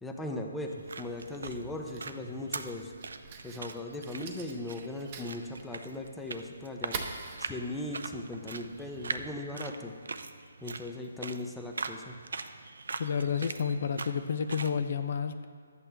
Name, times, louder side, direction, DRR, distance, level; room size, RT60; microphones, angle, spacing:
voice 1, 0.0-2.9 3.4-7.1 7.4-9.9 10.6-12.2, left 2 dB, 5° left, 2 dB, 0.6 m, -38 dB
Fire, 0.6-9.3, right 5 dB, 30° right, 0.8 m, -46 dB
sound 1, 0.6-14.8, right 4 dB, 80° right, 0.5 m, -42 dB
voice 2, 13.0-15.5, left 6 dB, 50° left, 10 dB, 0.4 m, -30 dB
12.0 x 8.3 x 3.4 m, 2.1 s
hypercardioid pair, 165°, 0 cm